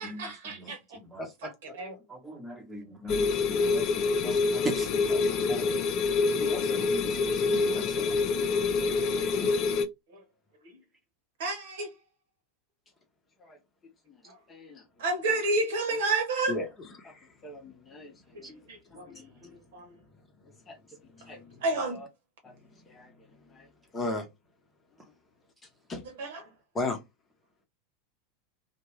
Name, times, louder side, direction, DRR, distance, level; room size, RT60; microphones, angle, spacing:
voice 1, 0.0-1.0 1.4-2.0 10.1-10.2 10.6-10.8 11.4-11.9 14.3-14.4 15.0-16.5 18.5-20.0 21.6-22.0 26.2-26.4, right 3 dB, 60° right, 1.0 m, -31 dB
voice 2, 1.2-1.5 5.1-5.5 13.5-13.6 14.5-14.8 16.5-16.7 17.0-17.1 17.4-18.1 18.9-19.5 20.7-20.8 21.1-21.6 22.4-22.5 22.9-23.1 23.5-23.7 23.9-24.3 25.9-26.0 26.7-27.0, left 2 dB, 20° left, 0.9 m, -36 dB
voice 3, 2.1-5.1 5.5-5.7 6.3-8.1 9.4-9.5, right 1 dB, 10° right, 1.0 m, -39 dB
sound 1, 3.1-9.9, left 4 dB, 45° left, 0.4 m, -26 dB
2.6 x 2.2 x 3.2 m
figure-of-eight pair, 85°, 0 cm